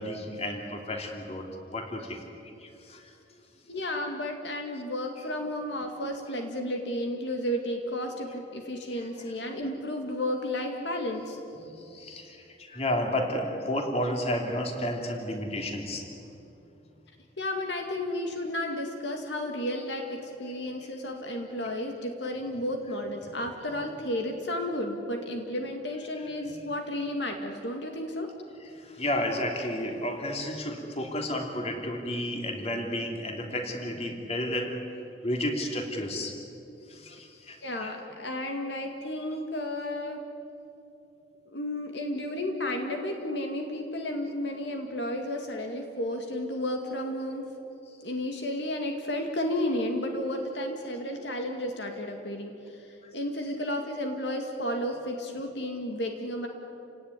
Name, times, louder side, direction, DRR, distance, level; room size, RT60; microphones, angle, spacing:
voice 1, 0.0-2.2 2.6-3.1 9.0-9.1 11.6-16.1 26.4-26.5 28.6-34.7 35.2-36.4 36.9-37.9, left 1 dB, 35° left, 2 dB, 3.3 m, -32 dB
voice 2, 3.7-11.4 17.4-28.3 37.6-40.2 41.5-47.5 48.0-56.5, left 1 dB, 65° left, 3 dB, 2.3 m, -32 dB
29.5 x 18.0 x 9.9 m, 2.8 s
head